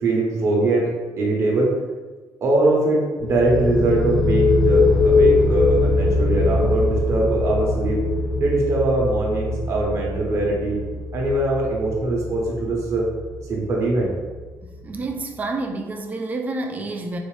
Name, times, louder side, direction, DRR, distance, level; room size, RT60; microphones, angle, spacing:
voice 1, 0.0-0.9 1.2-1.7 2.4-8.0 8.4-10.8 11.1-13.0 13.5-14.1, right 2 dB, 45° right, -2 dB, 0.9 m, -22 dB
sound 1, 3.2-14.7, left 2 dB, 80° left, 0.5 m, -22 dB
voice 2, 14.6-17.2, right 2 dB, 25° right, 4 dB, 0.3 m, -29 dB
4.2 x 2.6 x 3.2 m, 1.3 s
cardioid pair, 170°, 7 cm